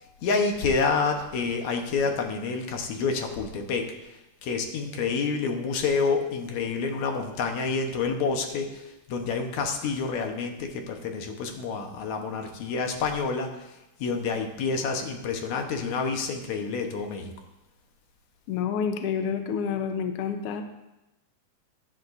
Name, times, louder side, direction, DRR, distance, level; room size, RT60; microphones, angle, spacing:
voice 1, 0.0-3.9 4.4-17.3, left 4 dB, 65° left, 4 dB, 2.3 m, -28 dB
voice 2, 18.5-20.6, left 7 dB, 85° left, 6 dB, 1.3 m, -28 dB
16.0 x 10.0 x 2.6 m, 0.95 s
omnidirectional pair, 3.7 m